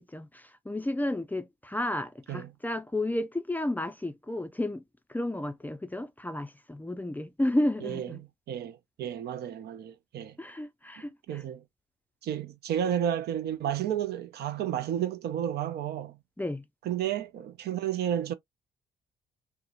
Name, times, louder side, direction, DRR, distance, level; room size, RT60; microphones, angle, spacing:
voice 1, 0.0-4.8 5.1-8.2 10.4-11.4 16.4-16.6, left 1 dB, 10° left, 0.4 m, -32 dB
voice 2, 8.5-10.4 11.3-11.6 12.2-16.2 16.9-18.3, right 10 dB, 55° right, 0.5 m, -31 dB
2.7 x 2.0 x 2.4 m
hypercardioid pair, 50°, 20 cm